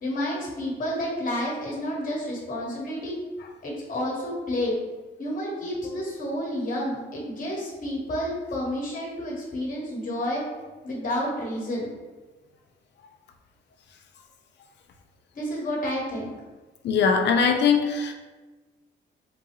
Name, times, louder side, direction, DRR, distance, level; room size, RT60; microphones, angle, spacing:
voice 1, 0.0-3.1 3.6-4.8 5.2-10.4 10.8-11.9 15.3-16.3, left 1 dB, 45° left, -3 dB, 1.3 m, -30 dB
voice 2, 16.8-18.1, left 6 dB, 60° left, 4 dB, 0.5 m, -21 dB
3.8 x 2.3 x 3.0 m, 1.2 s
cardioid pair, 90°, 20 cm